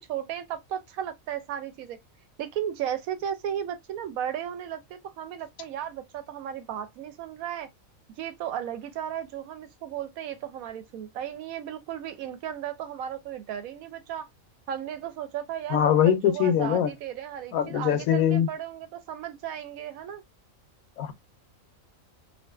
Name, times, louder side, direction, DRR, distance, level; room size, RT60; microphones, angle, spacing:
voice 1, 0.1-2.0 2.4-7.7 8.2-14.3 14.7-20.2, right 10 dB, 90° right, 1.0 m, -35 dB
voice 2, 15.7-16.9 17.5-18.5 21.0-21.1, left 9 dB, 85° left, 1.0 m, -22 dB
2.5 x 2.4 x 2.2 m
omnidirectional pair, 1.4 m